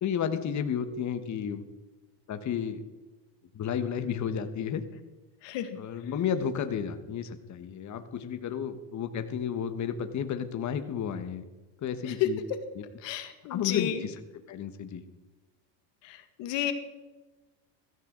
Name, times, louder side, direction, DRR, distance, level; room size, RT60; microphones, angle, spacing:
voice 1, 0.0-1.7 2.3-2.8 3.5-4.8 5.7-11.4 11.8-12.4 12.7-12.8 13.5-15.0, left 8 dB, 35° left, 9 dB, 1.3 m, -32 dB
voice 2, 13.0-14.0 16.0-16.7, left 13 dB, 60° left, 8 dB, 2.0 m, -31 dB
15.5 x 14.0 x 3.9 m, 1.2 s
supercardioid pair, 100°, 50 cm